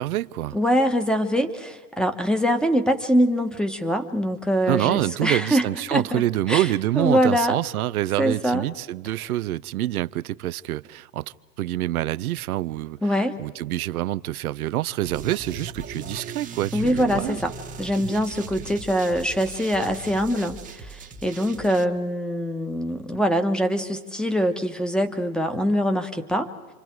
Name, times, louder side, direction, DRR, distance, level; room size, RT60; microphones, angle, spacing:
voice 1, 0.0-0.6 4.7-11.2 11.6-13.0 13.4-17.4, right 15 dB, 70° right, 0.7 m, -26 dB
voice 2, 0.5-6.2 6.5-6.7 6.9-7.6 8.2-8.6 13.0-13.3 16.7-17.5 17.8-26.5, equal, ahead, 1.4 m, -23 dB
sound 1, 15.1-21.8, right 5 dB, 15° right, 1.3 m, -38 dB
28.0 x 26.0 x 4.7 m
hypercardioid pair, 120°, 45 cm